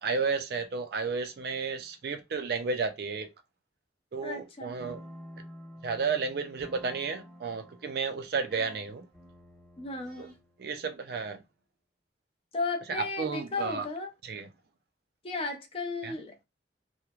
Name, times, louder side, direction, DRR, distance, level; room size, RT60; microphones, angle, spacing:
voice 1, 0.0-3.3 4.1-5.0 5.8-9.1 10.2-10.3 10.6-11.4 12.9-13.9 14.2-14.5 16.0-16.2, right 4 dB, 60° right, 0.4 m, -32 dB
voice 2, 4.2-4.9 9.8-10.3 12.5-14.1 15.2-16.4, left 3 dB, 30° left, 0.5 m, -35 dB
sound 1, 4.8-10.7, equal, 5° left, 0.8 m, -50 dB
3.0 x 2.1 x 2.3 m
head